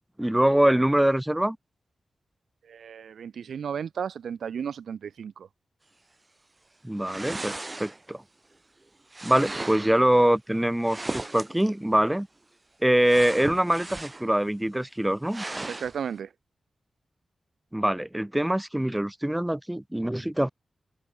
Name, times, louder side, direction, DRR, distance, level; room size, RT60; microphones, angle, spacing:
voice 1, 0.2-1.6 6.8-8.2 9.2-12.3 12.8-15.4 17.7-20.5, right 1 dB, 10° right, 0.9 m, -24 dB
voice 2, 2.7-5.5 15.7-16.3, right 7 dB, 85° right, 1.4 m, -34 dB
sound 1, 7.0-8.2 9.1-10.0 10.8-11.7 13.1-14.4 14.7-14.8 15.3-16.0, right 2 dB, 30° right, 3.3 m, -36 dB
cardioid pair, 45°, 0 cm